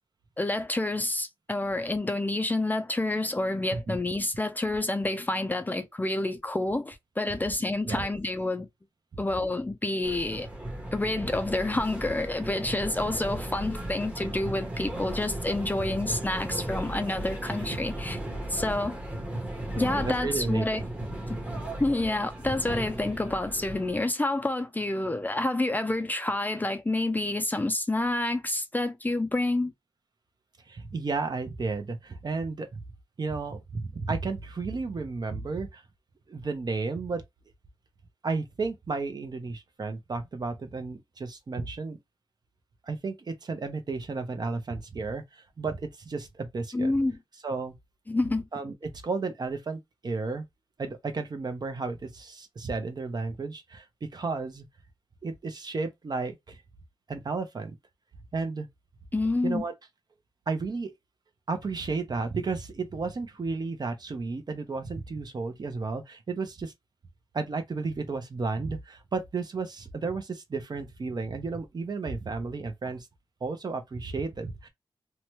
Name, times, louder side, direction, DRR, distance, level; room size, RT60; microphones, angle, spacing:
voice 1, 0.4-8.7 9.2-10.5 10.9-18.2 18.5-19.0 19.8-20.8 21.3-21.4 21.8-29.7 46.7-47.2 48.1-48.5 59.1-59.6, left 2 dB, 20° left, 0.4 m, -28 dB
sound 1, 10.0-24.0, right 1 dB, 15° right, 1.0 m, -36 dB
voice 2, 19.7-20.9 30.7-32.7 33.2-35.8 36.3-37.2 38.2-42.0 42.8-46.9 47.4-47.7 48.5-50.4 50.8-53.8 54.1-54.6 55.2-56.6 57.1-57.7 58.3-58.7 59.4-59.7 60.5-60.9 61.5-66.7 67.3-73.1 73.4-74.7, right 4 dB, 45° right, 0.7 m, -33 dB
2.8 x 2.2 x 3.0 m
cardioid pair, 75°, 9 cm